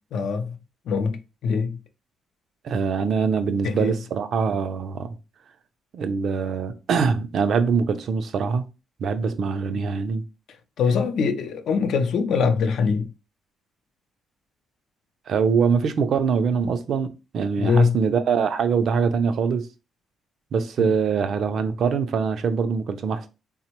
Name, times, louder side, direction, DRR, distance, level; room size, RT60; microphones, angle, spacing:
voice 1, 0.1-0.6 0.9-1.2 1.4-1.8 3.6-3.9 10.8-13.1 17.6-18.0 20.8-20.9, left 5 dB, 70° left, 0.4 m, -22 dB
voice 2, 2.6-5.2 5.9-8.6 9.0-10.2 15.3-19.7 20.5-23.3, right 5 dB, 65° right, 0.4 m, -23 dB
3.5 x 2.0 x 2.9 m
cardioid pair, 90°, 0 cm